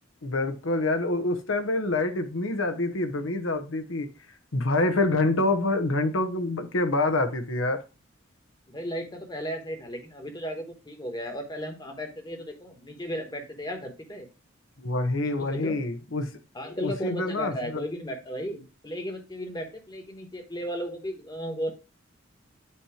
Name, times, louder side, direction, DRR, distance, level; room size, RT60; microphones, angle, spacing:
voice 1, 0.2-4.1 4.5-7.8 14.8-16.3 16.8-17.8, left 2 dB, 80° left, 7 dB, 0.9 m, -26 dB
voice 2, 8.7-14.3 15.2-15.8 16.5-21.7, equal, 20° left, 4 dB, 1.1 m, -35 dB
8.6 x 2.9 x 4.8 m, 0.31 s
head